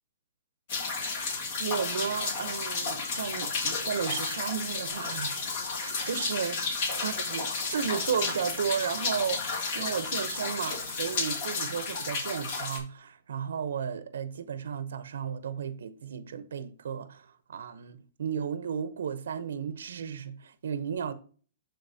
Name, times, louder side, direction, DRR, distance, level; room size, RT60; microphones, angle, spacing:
sound 1, 0.7-12.8, left 4 dB, 50° left, 2.0 m, -32 dB
voice 1, 1.6-5.3 5.8-9.5 9.7-21.1, right 7 dB, 80° right, 0.7 m, -34 dB
11.5 x 3.9 x 2.7 m
hypercardioid pair, 155°, 0 cm